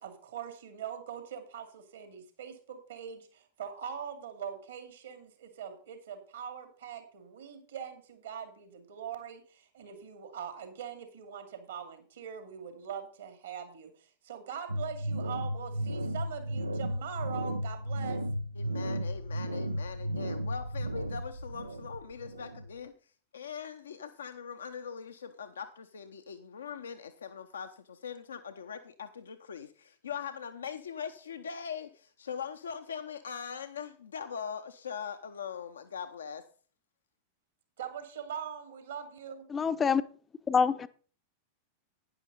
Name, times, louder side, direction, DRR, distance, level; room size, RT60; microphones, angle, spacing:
voice 1, 0.0-18.2 37.8-39.5, right 8 dB, 65° right, 2.4 m, -42 dB
sound 1, 14.7-22.9, equal, 80° right, 0.5 m, -34 dB
voice 2, 18.6-22.9 23.3-36.4, left 7 dB, 70° left, 0.7 m, -41 dB
voice 3, 39.5-40.0 40.5-40.9, left 6 dB, 20° left, 0.7 m, -26 dB
11.5 x 9.8 x 4.0 m
figure-of-eight pair, 90°, 0 cm